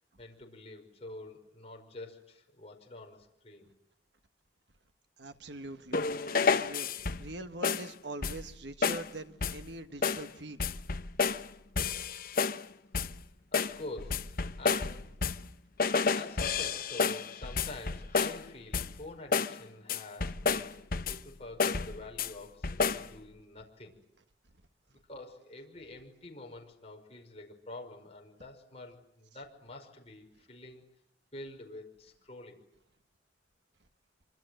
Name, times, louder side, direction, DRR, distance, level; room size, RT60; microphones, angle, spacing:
voice 1, 0.2-3.7 13.5-15.1 16.1-20.8 21.1-23.9 24.9-30.8 31.3-32.6, left 2 dB, 30° left, 5.5 m, -47 dB
voice 2, 5.2-10.7, right 2 dB, 65° right, 1.5 m, -43 dB
sound 1, 5.9-7.3 7.6-7.9 8.2-8.5 8.8-9.1 9.4-9.7 10.0-10.3 10.6-11.5 11.8-12.6 12.9-13.2 13.5-15.5 15.8-18.4 18.7-19.0 19.3-19.6 19.9-21.3 21.6-22.3 22.6-23.1, left 5 dB, 50° left, 0.9 m, -31 dB
26.0 x 25.5 x 7.9 m
head